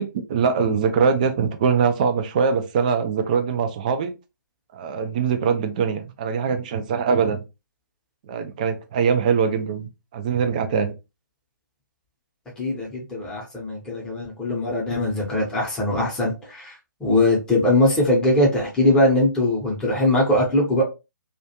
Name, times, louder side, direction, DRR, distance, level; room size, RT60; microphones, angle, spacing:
voice 1, 0.0-4.1 4.7-7.4 8.2-10.9, right 6 dB, 25° right, 7 dB, 0.3 m, -22 dB
voice 2, 12.6-20.8, left 1 dB, 5° left, -4 dB, 0.7 m, -21 dB
2.4 x 2.3 x 2.8 m, 0.27 s
figure-of-eight pair, 140°, 11 cm